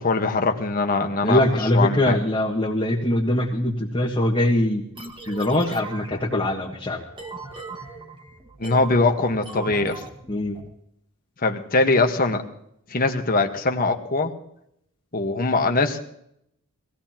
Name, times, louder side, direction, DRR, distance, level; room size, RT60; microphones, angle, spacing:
voice 1, 0.0-2.2 8.6-10.0 11.4-12.4 12.9-14.3 15.1-16.0, left 3 dB, 40° left, 4 dB, 1.4 m, -22 dB
voice 2, 1.2-4.8 5.3-7.0 10.3-10.6, left 1 dB, 20° left, -3 dB, 1.6 m, -22 dB
sound 1, 5.0-10.7, right 3 dB, 20° right, 1.6 m, -39 dB
23.0 x 17.0 x 3.0 m, 0.74 s
head